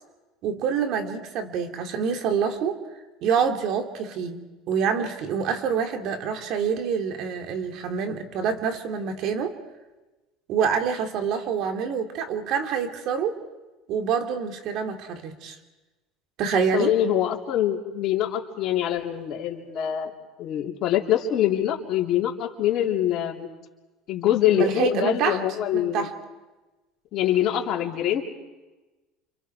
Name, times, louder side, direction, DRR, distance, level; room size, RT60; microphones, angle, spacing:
voice 1, 0.4-2.8 3.2-4.4 4.7-9.5 10.5-13.3 13.9-15.6 16.4-16.9 24.5-25.4 25.7-26.1, right 6 dB, 60° right, 4 dB, 2.9 m, -26 dB
voice 2, 16.5-20.1 20.4-23.5 24.1-26.1 27.1-28.2, left 11 dB, 55° left, 0 dB, 3.5 m, -24 dB
29.5 x 27.0 x 4.6 m, 1.2 s
supercardioid pair, 110°, 0 cm